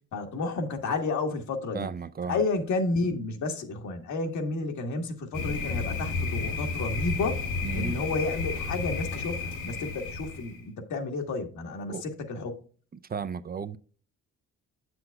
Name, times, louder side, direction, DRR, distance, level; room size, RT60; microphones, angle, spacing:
voice 1, 0.1-1.9 2.2-7.4 7.7-12.6, left 3 dB, 70° left, 1.6 m, -31 dB
voice 2, 1.7-2.4 7.6-8.0 11.9-12.0 13.1-13.8, right 6 dB, 30° right, 0.5 m, -34 dB
Thunder, 5.3-10.6, left 4 dB, 85° left, 1.9 m, -32 dB
7.7 x 7.7 x 2.3 m
cardioid pair, 90°, 30 cm